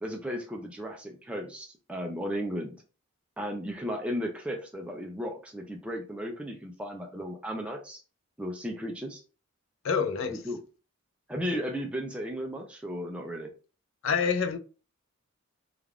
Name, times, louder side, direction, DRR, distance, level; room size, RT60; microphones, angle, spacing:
voice 1, 0.0-2.8 3.4-8.0 8.4-9.2 10.3-10.6 11.3-13.5, equal, 5° right, 0.3 m, -35 dB
voice 2, 9.8-10.4 14.0-14.6, left 6 dB, 65° left, 0.4 m, -27 dB
3.4 x 2.4 x 2.2 m
head